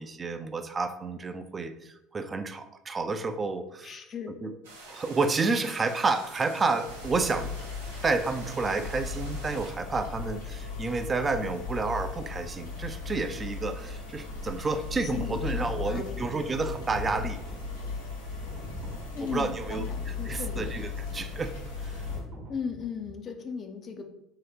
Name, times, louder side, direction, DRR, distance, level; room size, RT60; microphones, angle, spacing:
voice 1, 0.0-4.0 4.4-4.6 4.9-7.5 8.0-17.4 19.3-19.8 20.2-21.5 21.8-22.0, right 3 dB, 25° right, 9 dB, 0.4 m, -30 dB
voice 2, 3.8-4.3 14.4-14.5 15.0-16.3 19.1-20.9 22.5-24.1, left 6 dB, 40° left, 5 dB, 0.4 m, -37 dB
sound 1, 4.6-9.7, right 2 dB, 80° right, 0.8 m, -47 dB
sound 2, 6.9-22.2, left 4 dB, 90° left, 1.3 m, -37 dB
sound 3, 16.0-23.1, right 2 dB, 45° right, 0.9 m, -45 dB
3.3 x 2.8 x 3.3 m, 0.85 s
hypercardioid pair, 70°, 0 cm